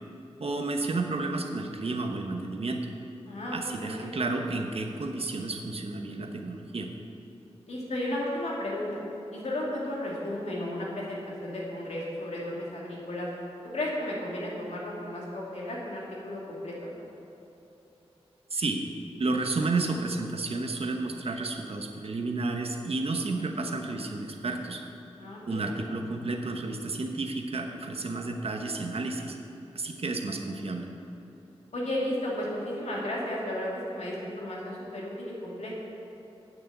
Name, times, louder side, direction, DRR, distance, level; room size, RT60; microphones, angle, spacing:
voice 1, 0.4-2.9 3.5-6.9 18.5-18.8 19.2-24.8 25.5-29.4 29.7-30.9, right 3 dB, 65° right, 3 dB, 1.0 m, -31 dB
voice 2, 3.3-4.1 7.7-9.0 9.3-13.3 13.7-16.9 25.2-25.4 31.7-35.8, left 1 dB, 90° left, -4 dB, 2.5 m, -34 dB
9.2 x 6.4 x 8.1 m, 3.0 s
wide cardioid pair, 85°, 11 cm